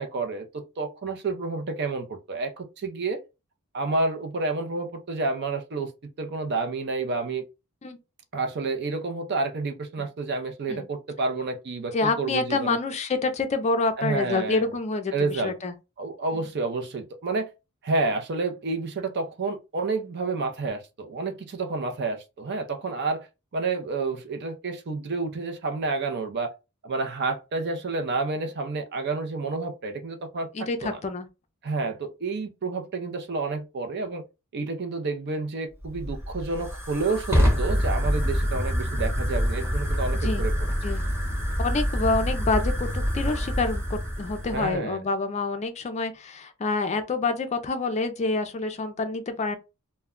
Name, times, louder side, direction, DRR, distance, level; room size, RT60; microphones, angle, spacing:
voice 1, 0.0-3.2 3.7-5.9 6.2-7.4 8.3-12.8 14.0-14.7 15.1-15.5 16.0-17.5 17.8-23.3 23.5-26.5 26.8-30.5 30.8-31.0 31.6-34.2 34.5-40.5 44.5-45.0, right 3 dB, 50° right, 0.5 m, -29 dB
voice 2, 11.9-15.1 15.4-15.7 30.5-31.3 40.2-40.4 40.8-41.0 41.6-49.6, left 3 dB, 30° left, 0.4 m, -27 dB
Fire, 35.8-44.7, equal, 10° right, 1.0 m, -26 dB
2.2 x 2.1 x 3.5 m
head